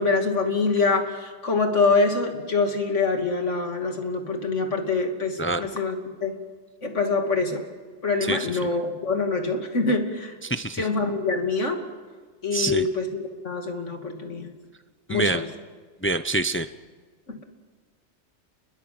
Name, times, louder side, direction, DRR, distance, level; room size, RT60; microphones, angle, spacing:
voice 1, 0.0-6.3 6.8-7.6 8.0-10.4 10.7-11.8 12.4-14.5 15.1-15.4 17.3-17.4, left 3 dB, 80° left, 4 dB, 2.9 m, -25 dB
voice 2, 10.4-10.8 12.5-12.9 15.1-15.4 16.0-16.7, right 2 dB, 15° left, 11 dB, 0.6 m, -25 dB
28.5 x 22.0 x 7.8 m, 1.4 s
omnidirectional pair, 1.2 m